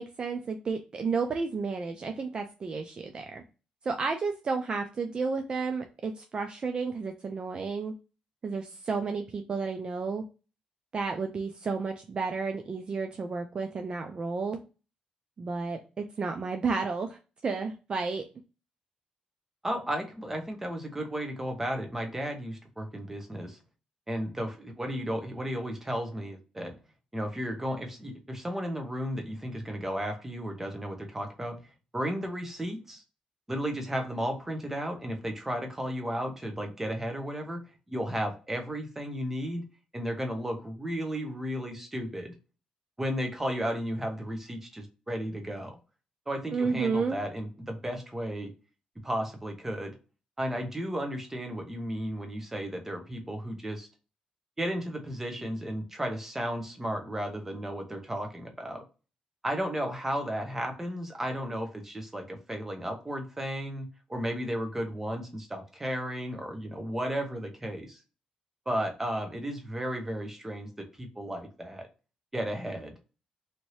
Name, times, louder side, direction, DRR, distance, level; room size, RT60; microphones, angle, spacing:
voice 1, 0.0-3.4 3.8-7.9 8.4-10.2 10.9-14.6 15.4-18.2 46.5-47.2, right 4 dB, 40° right, 5 dB, 0.4 m, -32 dB
voice 2, 19.6-23.6 24.1-26.8 27.1-31.6 31.9-33.0 33.5-37.6 37.9-39.6 39.9-42.3 43.0-45.8 46.3-48.5 49.0-49.9 50.4-53.9 54.6-58.8 59.4-68.0 68.7-71.9 72.3-72.9, equal, 15° right, 4 dB, 0.9 m, -34 dB
2.8 x 2.6 x 3.0 m, 0.33 s
cardioid pair, 105°, 2 cm